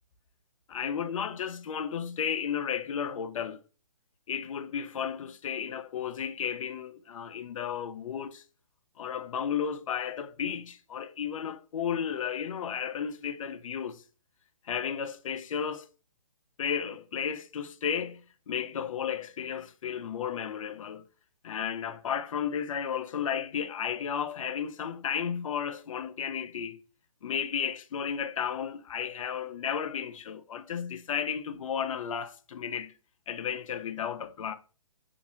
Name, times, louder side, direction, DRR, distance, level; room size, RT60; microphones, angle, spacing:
voice 1, 0.7-3.6 4.3-8.4 9.0-14.0 14.6-15.9 16.6-21.0 21.4-26.8 27.2-32.9 33.3-34.5, left 8 dB, 65° left, 0.4 m, -33 dB
2.8 x 2.4 x 2.6 m
hypercardioid pair, 160°, 18 cm